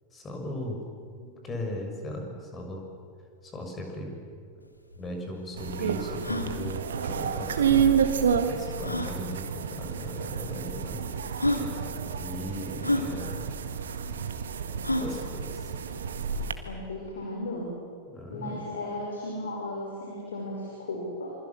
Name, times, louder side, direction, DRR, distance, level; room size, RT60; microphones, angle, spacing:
voice 1, 0.1-0.8 1.4-2.9 3.4-4.2 4.5-4.6 5.0-7.9 8.4-11.0 11.5-13.5 14.9-15.7 18.1-18.6, left 1 dB, 20° left, 2 dB, 6.4 m, -38 dB
sound 1, 4.6-4.7 4.9-5.0 5.5-5.6 6.1-6.5 7.8-7.9 8.8-9.1 10.1-10.2 11.0-11.1 11.4-11.7 12.8-13.1 14.8-15.2, left 1 dB, 85° left, 2.2 m, -28 dB
sound 2, 5.6-16.5, right 7 dB, 65° right, 1.8 m, -29 dB
voice 2, 16.7-17.7 18.3-21.3, left 1 dB, 65° left, -1 dB, 5.3 m, -35 dB
27.0 x 25.0 x 7.4 m, 2.3 s
figure-of-eight pair, 90°, 0 cm